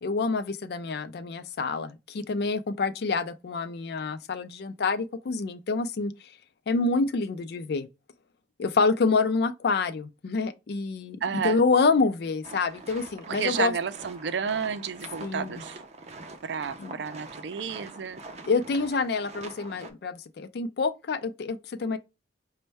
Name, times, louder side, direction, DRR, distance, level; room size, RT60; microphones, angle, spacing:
voice 1, 0.0-6.1 6.7-7.9 8.6-13.7 15.2-15.6 16.8-16.9 18.5-22.0, left 4 dB, 65° left, 0.4 m, -27 dB
voice 2, 11.2-11.6 13.3-15.8 16.4-18.2, right 6 dB, 80° right, 0.4 m, -31 dB
sound 1, 12.4-19.9, right 3 dB, 40° right, 0.6 m, -44 dB
5.2 x 2.2 x 3.3 m
head